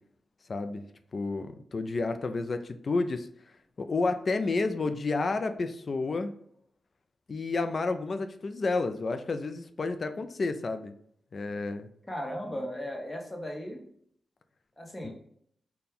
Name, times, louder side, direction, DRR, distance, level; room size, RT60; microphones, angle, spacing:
voice 1, 0.5-0.8 1.1-3.3 3.8-6.3 7.3-10.9 11.3-11.9 15.0-15.1, left 3 dB, 55° left, 9 dB, 0.4 m, -30 dB
voice 2, 12.1-13.9 14.8-15.1, equal, 20° left, 1 dB, 1.1 m, -36 dB
4.1 x 2.2 x 3.5 m, 0.67 s
cardioid pair, 60°, 0 cm